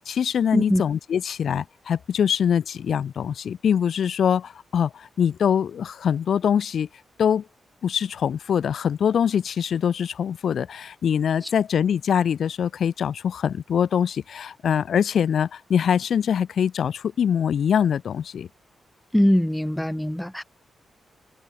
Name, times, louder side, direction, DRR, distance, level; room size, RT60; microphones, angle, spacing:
voice 1, 0.1-6.9 7.2-7.4 7.8-18.5, left 8 dB, 70° left, 0.7 m, -23 dB
voice 2, 19.1-20.4, equal, 5° left, 1.2 m, -21 dB
wide cardioid pair, 130°, 0 cm